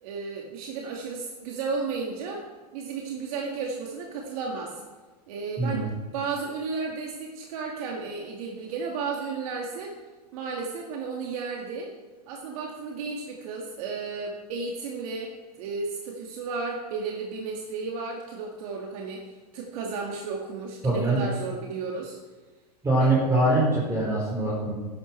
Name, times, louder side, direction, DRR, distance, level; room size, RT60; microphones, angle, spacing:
voice 1, 0.0-2.4 2.7-4.8 5.3-10.0 10.3-11.9 12.3-19.2 19.5-22.2 23.0-23.2, right 4 dB, 60° right, 0 dB, 2.1 m, -33 dB
voice 2, 5.6-5.9 20.8-21.2 22.8-24.7, right 2 dB, 15° right, -7 dB, 4.5 m, -23 dB
13.0 x 11.0 x 4.5 m, 1.3 s
hypercardioid pair, 120°, 21 cm